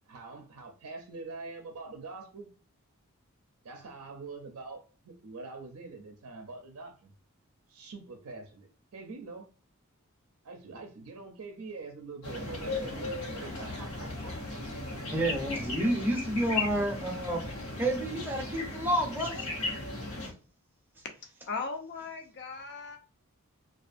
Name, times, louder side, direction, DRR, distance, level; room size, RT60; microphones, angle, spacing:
voice 1, 0.1-2.5 3.6-7.1 7.7-9.5 10.4-14.3, right 3 dB, 70° right, 0.5 m, -44 dB
sound 1, 12.2-20.3, left 2 dB, 75° left, 1.0 m, -36 dB
voice 2, 15.1-17.4 17.8-19.5 20.2-20.3, right 1 dB, 10° right, 0.6 m, -30 dB
voice 3, 21.5-23.0, left 4 dB, 50° left, 0.5 m, -37 dB
2.5 x 2.3 x 2.4 m
head